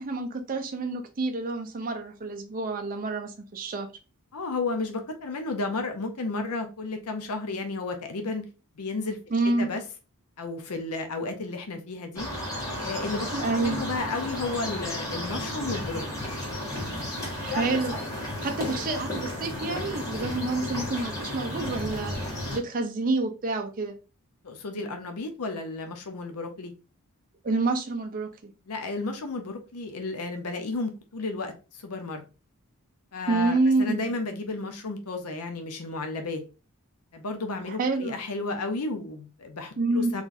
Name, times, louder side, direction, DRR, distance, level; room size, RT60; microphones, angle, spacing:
voice 1, 0.0-3.9 9.3-9.7 13.3-13.8 17.4-23.9 27.4-28.5 33.3-34.1 37.7-38.2 39.8-40.1, right 3 dB, 40° right, 0.5 m, -28 dB
voice 2, 4.3-8.5 8.8-9.2 9.4-9.8 10.4-12.3 12.8-13.3 13.5-16.0 24.4-26.7 28.7-32.2 33.1-36.4 37.1-40.2, left 3 dB, 75° left, 0.6 m, -32 dB
sound 1, 12.1-22.6, left 1 dB, 15° left, 1.4 m, -33 dB
3.8 x 3.1 x 2.5 m
head